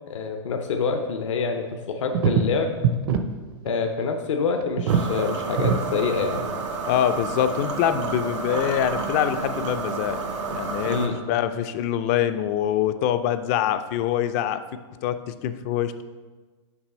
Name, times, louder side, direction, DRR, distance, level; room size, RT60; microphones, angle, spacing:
voice 1, 0.1-2.7 3.6-6.6 10.8-11.2, left 5 dB, 75° left, 5 dB, 0.7 m, -26 dB
sound 1, 1.6-1.7 2.1-3.2 3.5-3.7 4.0-4.1 4.6-5.2 5.6-5.8 6.4-6.5, right 7 dB, 45° right, 0.5 m, -22 dB
sound 2, 4.9-11.1, right 4 dB, 80° right, 1.5 m, -30 dB
voice 2, 6.9-10.2 10.5-11.0 11.3-14.6 15.0-16.0, left 10 dB, 30° left, 11 dB, 0.3 m, -24 dB
6.0 x 6.0 x 4.2 m, 1.3 s
hypercardioid pair, 150°, 16 cm